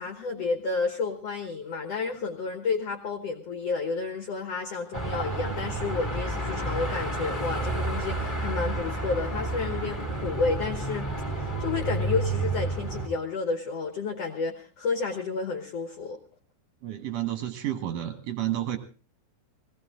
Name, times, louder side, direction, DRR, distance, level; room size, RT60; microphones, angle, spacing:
voice 1, 0.0-11.1 11.4-16.2, left 4 dB, 60° left, 4 dB, 1.7 m, -31 dB
Car passing by / Traffic noise roadway noise / Engine, 4.9-13.1, right 2 dB, 10° left, 1.1 m, -30 dB
voice 2, 16.8-18.8, right 13 dB, 60° right, 8 dB, 1.8 m, -30 dB
20.5 x 16.5 x 3.7 m, 0.34 s
omnidirectional pair, 4.5 m